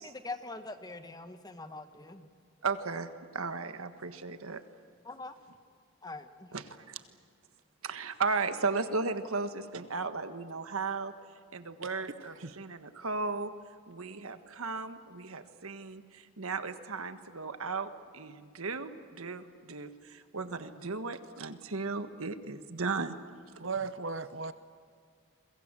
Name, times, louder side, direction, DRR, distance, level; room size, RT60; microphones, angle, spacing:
voice 1, 0.0-2.3 5.0-5.4 6.0-6.5, left 3 dB, 20° left, 9 dB, 1.2 m, -43 dB
voice 2, 2.6-4.6 6.5-7.0 7.8-11.1 11.5-13.5 13.9-23.1 23.5-23.6, right 4 dB, 80° right, 10 dB, 1.5 m, -36 dB
voice 3, 23.6-24.5, right 4 dB, 60° right, 13 dB, 0.9 m, -36 dB
29.0 x 23.0 x 7.6 m, 2.2 s
head